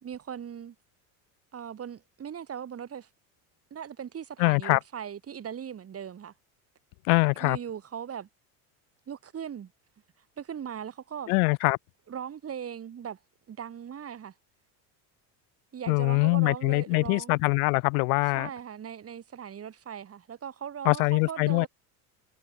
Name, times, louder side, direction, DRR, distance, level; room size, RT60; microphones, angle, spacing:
voice 1, 0.0-0.8 1.5-3.1 3.7-6.3 7.4-8.3 9.1-9.7 10.4-11.3 12.1-13.2 13.5-14.3 15.7-17.4 18.3-21.7, right 8 dB, 35° right, 6.1 m, -39 dB
voice 2, 4.4-4.8 7.1-7.6 11.3-11.8 15.9-18.5 20.8-21.7, left 33 dB, 75° left, 0.8 m, -23 dB
supercardioid pair, 115°, 43 cm